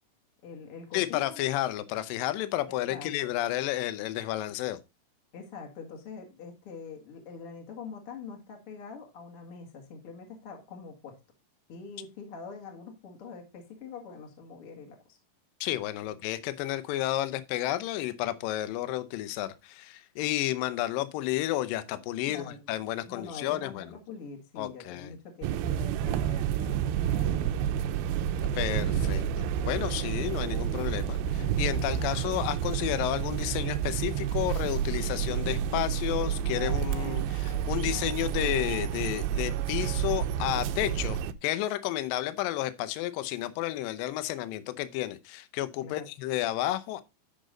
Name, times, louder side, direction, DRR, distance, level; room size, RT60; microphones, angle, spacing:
voice 1, 0.4-1.4 2.7-3.3 5.3-11.2 11.7-15.2 22.3-22.6 23.1-27.8 45.8-46.1, left 5 dB, 45° left, 2.1 m, -44 dB
voice 2, 0.9-4.8 15.6-23.9 24.6-25.1 28.5-47.0, left 14 dB, 75° left, 2.2 m, -31 dB
sound 1, 25.4-41.3, right 9 dB, 80° right, 2.3 m, -30 dB
10.0 x 6.2 x 3.8 m
omnidirectional pair, 4.7 m